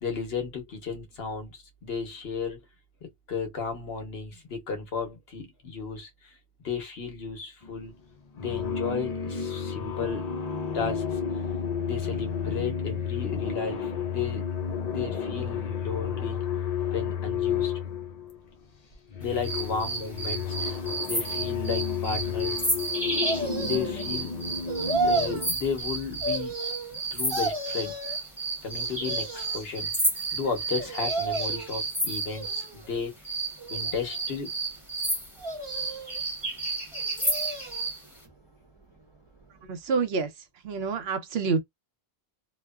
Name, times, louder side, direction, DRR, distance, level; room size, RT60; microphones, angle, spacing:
voice 1, 0.0-2.6 3.3-6.1 6.6-7.9 8.4-10.2 10.7-11.2 11.8-14.4 14.8-16.4 16.9-17.7 19.2-20.8 21.1-22.6 23.5-24.3 25.0-26.6 26.9-27.9 28.6-29.9 30.3-33.1 33.7-34.5, left 5 dB, 70° left, 1.2 m, -34 dB
sound 1, 7.6-7.9 8.3-18.4 18.9-25.5, left 7 dB, 45° left, 0.6 m, -31 dB
sound 2, 19.4-32.7 33.2-38.0, right 2 dB, ahead, 1.1 m, -31 dB
sound 3, 23.2-24.0 24.7-25.5 26.2-27.0 27.3-28.2 28.8-29.6 30.8-31.7 32.2-32.9 33.6-34.4 35.4-36.2 36.9-37.9 38.2-38.3, right 2 dB, 30° right, 0.7 m, -32 dB
voice 2, 39.7-40.3 40.6-41.6, right 5 dB, 70° right, 0.9 m, -27 dB
3.0 x 2.1 x 2.2 m
omnidirectional pair, 1.1 m